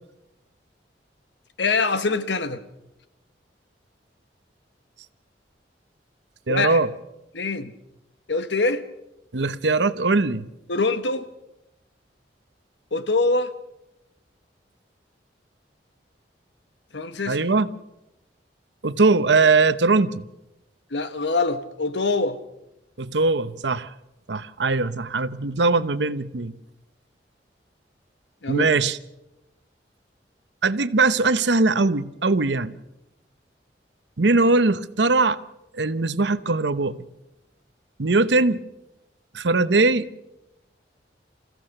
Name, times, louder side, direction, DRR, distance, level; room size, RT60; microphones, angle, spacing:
voice 1, 1.6-2.6 6.5-6.8 7.3-7.7 8.3-8.8 10.7-11.3 12.9-13.5 16.9-17.4 20.9-22.4 28.4-28.8, left 3 dB, 80° left, 1.3 m, -24 dB
voice 2, 6.5-6.9 9.3-10.5 17.3-17.7 18.8-20.2 23.0-23.9 24.3-26.5 28.5-29.0 30.6-32.8 34.2-35.4 35.7-37.0 38.0-38.6 39.3-40.1, right 3 dB, 80° right, 0.9 m, -21 dB
27.5 x 15.5 x 6.6 m
head